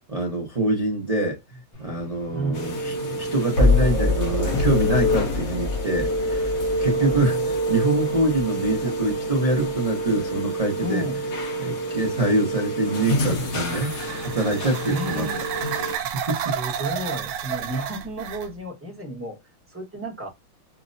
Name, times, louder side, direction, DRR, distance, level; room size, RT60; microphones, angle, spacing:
voice 1, 0.1-1.4 1.8-6.5 6.8-11.1 11.6-13.9 14.2-15.3 15.9-16.5, right 2 dB, 65° right, 0.3 m, -25 dB
sound 1, 1.7-12.8, left 3 dB, 80° left, 2.3 m, -28 dB
voice 2, 2.3-2.7 6.6-7.5 10.8-11.2 14.9-15.4 16.3-19.4 19.7-20.3, right 1 dB, 10° right, 0.6 m, -32 dB
sound 2, 2.5-16.0, equal, 55° left, 1.1 m, -27 dB
sound 3, 13.2-18.5, right 9 dB, 85° right, 1.4 m, -31 dB
5.7 x 2.1 x 2.6 m
omnidirectional pair, 2.2 m